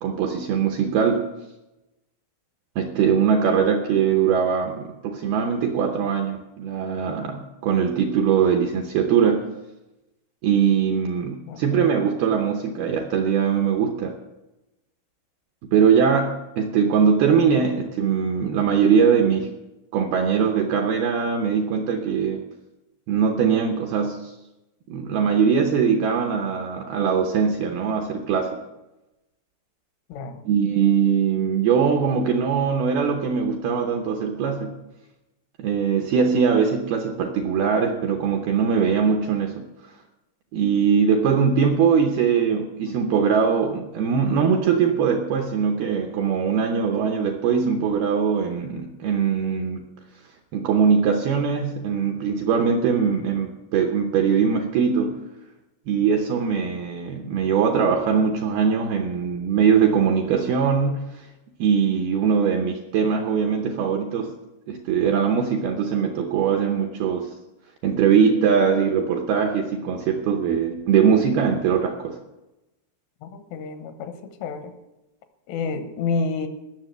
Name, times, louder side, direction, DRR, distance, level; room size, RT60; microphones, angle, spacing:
voice 1, 0.0-1.3 2.8-9.5 10.4-14.1 15.7-19.5 19.9-22.4 23.1-24.3 24.9-28.6 30.5-34.8 35.6-39.6 40.5-49.8 50.5-55.2 55.9-61.3 61.6-64.3 64.7-67.3 67.8-72.2, right 6 dB, 80° right, 4 dB, 2.2 m, -21 dB
voice 2, 11.5-11.9 30.1-30.4 73.2-74.1 74.4-74.7 75.5-76.5, left 4 dB, 85° left, 8 dB, 3.7 m, -29 dB
16.5 x 6.8 x 7.9 m, 0.99 s
omnidirectional pair, 5.5 m